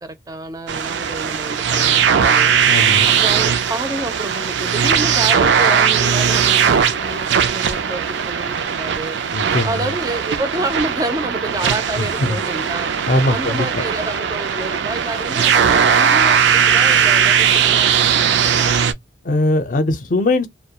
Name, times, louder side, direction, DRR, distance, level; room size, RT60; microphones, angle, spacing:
voice 1, 0.0-2.5 3.1-9.2 9.6-12.9 13.3-18.9, right 1 dB, 20° right, 0.4 m, -29 dB
sound 1, 0.7-18.9, right 7 dB, 85° right, 0.4 m, -18 dB
voice 2, 2.7-3.1 9.3-9.8 12.2-12.4 13.1-13.7 19.3-20.5, left 2 dB, 45° left, 0.5 m, -19 dB
2.3 x 2.1 x 2.8 m
head